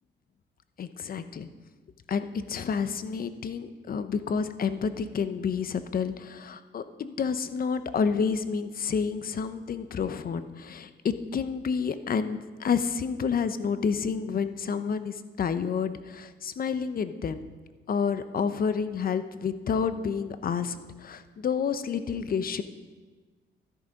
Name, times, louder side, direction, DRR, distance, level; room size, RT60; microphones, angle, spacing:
voice 1, 0.8-1.5 2.1-17.4 17.9-22.6, left 6 dB, 45° left, 12 dB, 0.9 m, -29 dB
12.5 x 11.0 x 5.2 m, 1.4 s
cardioid pair, 90°, 20 cm